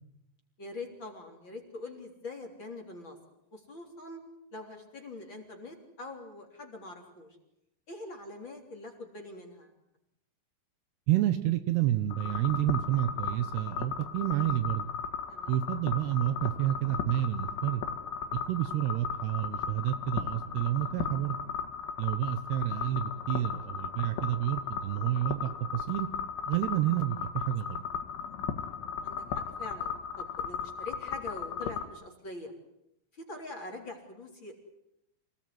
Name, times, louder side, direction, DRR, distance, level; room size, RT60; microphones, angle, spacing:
voice 1, 0.6-3.2 3.5-4.2 4.5-7.3 7.9-9.7 15.3-15.5 22.0-22.2 29.0-32.5 33.2-34.5, left 2 dB, 30° left, 2 dB, 3.7 m, -44 dB
voice 2, 11.1-14.9 15.5-17.8 18.5-21.4 22.0-26.1 26.5-27.8, right 13 dB, 70° right, 11 dB, 2.9 m, -29 dB
sound 1, 12.1-31.9, left 7 dB, 85° left, 4.1 m, -36 dB
28.0 x 19.0 x 9.5 m, 0.82 s
omnidirectional pair, 5.3 m